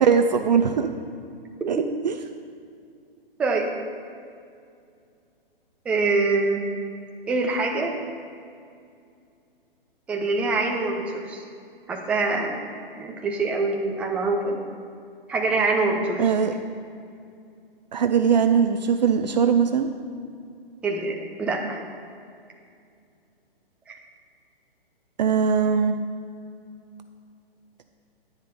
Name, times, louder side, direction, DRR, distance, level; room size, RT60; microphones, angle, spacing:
voice 1, 0.0-0.9 1.7-2.1 16.2-16.6 17.9-19.9 25.2-25.9, right 6 dB, 45° right, 7 dB, 0.6 m, -20 dB
voice 2, 5.8-6.6 7.3-7.9 10.1-11.4 11.9-12.6 12.9-14.6 15.3-16.3 20.8-21.8 23.9-24.0, right 3 dB, 5° right, 1 dB, 0.5 m, -24 dB
10.0 x 9.6 x 4.2 m, 2.4 s
figure-of-eight pair, 125°, 29 cm